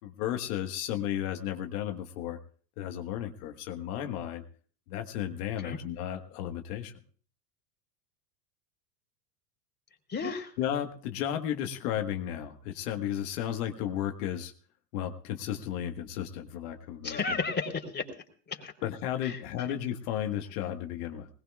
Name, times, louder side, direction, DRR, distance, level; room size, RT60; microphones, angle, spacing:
voice 1, 0.0-2.4 2.8-4.4 4.9-6.9 10.6-14.5 14.9-17.2 18.8-21.3, left 11 dB, 70° left, 5 dB, 1.6 m, -34 dB
voice 2, 10.1-10.5 17.0-18.0 18.5-18.7 19.2-19.4, left 4 dB, 20° left, 3 dB, 3.7 m, -33 dB
21.0 x 19.5 x 2.4 m, 0.43 s
hypercardioid pair, 95°, 48 cm